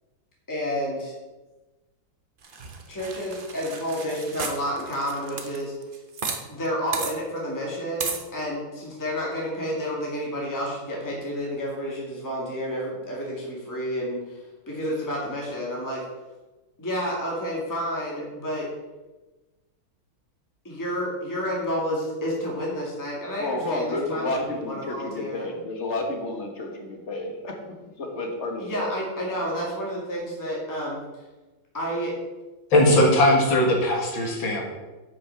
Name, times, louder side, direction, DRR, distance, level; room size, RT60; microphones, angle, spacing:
voice 1, 0.5-1.1 2.9-5.7 6.5-16.0 16.8-18.7 20.6-25.5 28.6-31.0 31.7-32.1, equal, 10° left, -4 dB, 2.0 m, -30 dB
sound 1, 2.4-6.4 6.6-6.7 6.9-7.1 8.0-8.2, right 4 dB, 40° right, 0.7 m, -34 dB
voice 2, 23.4-27.5 28.0-29.0, left 2 dB, 40° left, 2 dB, 1.5 m, -30 dB
voice 3, 32.7-34.6, left 1 dB, 75° left, 0 dB, 2.6 m, -19 dB
8.5 x 6.2 x 5.8 m, 1.2 s
omnidirectional pair, 2.2 m